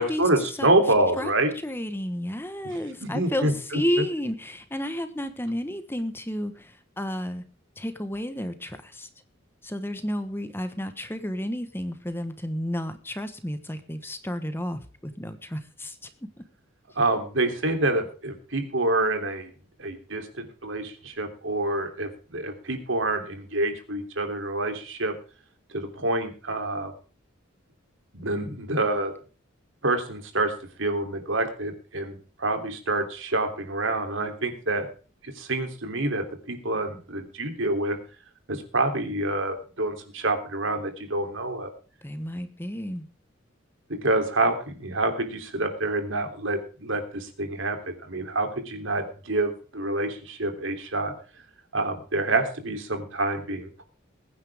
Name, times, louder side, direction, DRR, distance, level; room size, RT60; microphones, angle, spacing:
voice 1, 0.0-1.5 2.6-3.8 16.9-19.5 19.8-25.1 25.7-26.9 28.1-29.1 29.8-30.5 30.8-34.9 35.2-38.0 38.5-41.7 43.9-51.1 51.7-53.8, right 2 dB, 70° right, 6 dB, 3.3 m, -27 dB
voice 2, 1.6-7.4 7.8-9.1 9.6-16.4 42.0-43.1, equal, 10° left, 9 dB, 1.2 m, -32 dB
21.5 x 9.9 x 3.6 m, 0.38 s
head